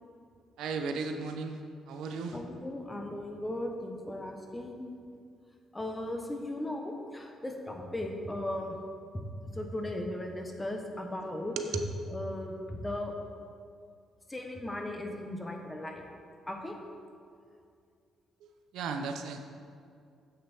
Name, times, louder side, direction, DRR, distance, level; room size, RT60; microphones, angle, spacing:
voice 1, 0.6-1.6 1.9-2.4 11.6-11.8 18.4-19.4, right 5 dB, 85° right, 6 dB, 0.6 m, -35 dB
voice 2, 2.3-4.8 5.7-8.8 9.5-11.6 12.1-13.1 14.3-16.0 16.5-16.7, left 1 dB, 15° left, 3 dB, 1.1 m, -37 dB
7.8 x 6.6 x 4.4 m, 2.3 s
cardioid pair, 90°, 0 cm